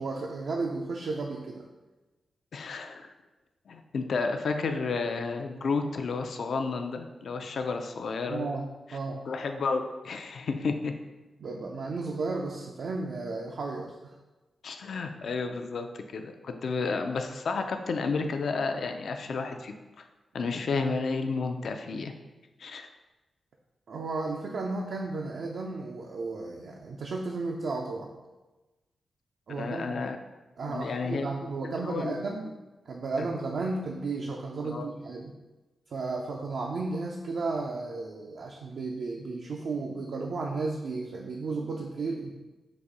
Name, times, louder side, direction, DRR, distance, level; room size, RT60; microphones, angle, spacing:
voice 1, 0.0-1.7 8.3-8.7 8.9-9.2 11.4-14.2 23.9-28.1 29.5-30.0 30.6-32.5 32.9-35.3 35.9-42.3, right 3 dB, 75° right, 0 dB, 0.4 m, -33 dB
voice 2, 2.5-3.1 3.7-8.5 8.9-9.0 9.3-10.9 14.6-20.1 20.3-22.1 22.6-22.9 29.5-30.2 30.7-31.3 31.6-32.2 33.2-33.3 34.7-34.9, left 4 dB, 75° left, 6 dB, 0.4 m, -31 dB
4.1 x 2.6 x 4.8 m, 1.1 s
cardioid pair, 75°, 0 cm